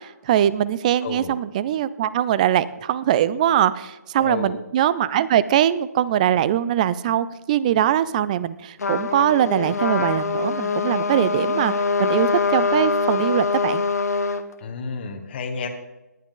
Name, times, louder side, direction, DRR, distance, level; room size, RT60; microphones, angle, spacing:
voice 1, 0.0-11.7 12.0-13.8, right 11 dB, 25° right, 17 dB, 0.5 m, -22 dB
voice 2, 1.0-1.3 4.2-4.6 14.6-15.7, left 5 dB, 35° left, 3 dB, 1.5 m, -31 dB
Trumpet, 8.8-14.4, left 4 dB, 65° left, 1.4 m, -23 dB
19.0 x 11.0 x 3.9 m, 1.0 s
figure-of-eight pair, 150°, 9 cm